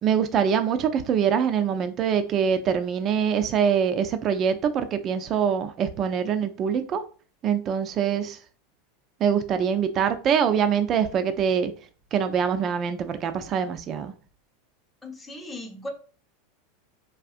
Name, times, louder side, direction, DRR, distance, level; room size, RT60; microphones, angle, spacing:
voice 1, 0.0-7.0 7.4-8.4 9.2-11.7 12.1-14.1, right 7 dB, 40° right, 9 dB, 0.4 m, -24 dB
voice 2, 15.0-15.9, left 1 dB, 15° left, 1 dB, 0.9 m, -37 dB
3.5 x 2.4 x 2.4 m, 0.39 s
figure-of-eight pair, 85°, 0 cm